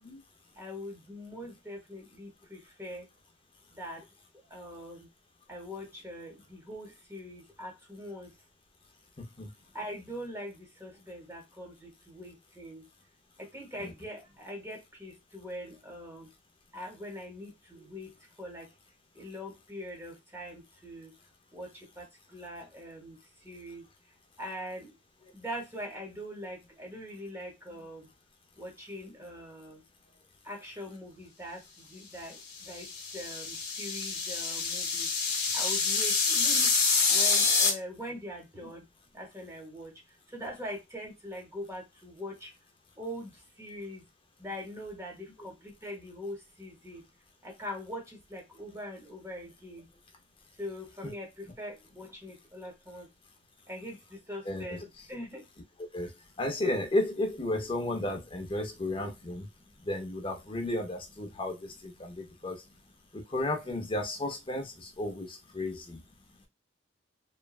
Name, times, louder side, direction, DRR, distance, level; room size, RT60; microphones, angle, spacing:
voice 1, 0.5-3.1 3.7-4.0 4.5-5.1 5.5-8.3 9.7-12.9 13.4-16.3 16.7-18.7 19.1-21.1 21.5-23.9 24.4-24.9 25.3-28.1 28.6-29.8 30.4-36.7 37.1-38.9 39.1-39.9 40.3-42.5 43.0-44.0 44.4-47.0 47.4-49.9 50.6-53.1 53.7-55.5 56.0-56.1 59.6-59.9 61.2-61.4 62.0-62.6, equal, 15° right, 0.9 m, -42 dB
sound 1, 32.6-37.7, left 4 dB, 65° left, 0.8 m, -27 dB
voice 2, 54.5-54.8 55.9-56.1 56.4-59.5 59.8-62.6 63.1-66.0, left 1 dB, 30° left, 0.6 m, -33 dB
3.1 x 2.2 x 2.3 m
head